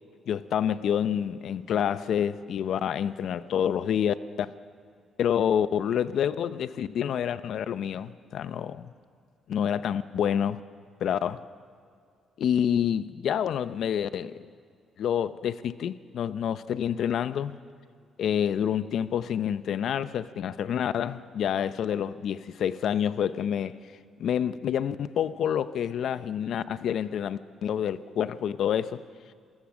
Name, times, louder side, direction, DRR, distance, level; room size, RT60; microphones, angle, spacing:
voice 1, 0.3-4.5 5.2-8.9 9.5-10.6 11.0-11.4 12.4-14.4 15.0-17.6 18.2-23.8 24.2-29.0, left 9 dB, 70° left, 14 dB, 0.7 m, -28 dB
27.0 x 15.5 x 6.3 m, 2.3 s
cardioid pair, 90°, 0 cm